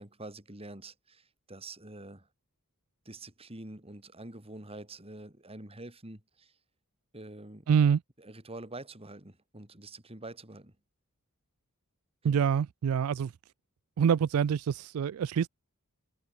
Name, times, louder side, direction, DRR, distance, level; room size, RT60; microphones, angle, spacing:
voice 1, 0.0-2.3 3.1-6.5 7.1-7.7 8.2-10.7 12.2-12.4, right 2 dB, 25° right, 3.7 m, -46 dB
voice 2, 7.7-8.0 12.2-13.3 14.0-15.5, right 7 dB, 75° right, 0.4 m, -26 dB
head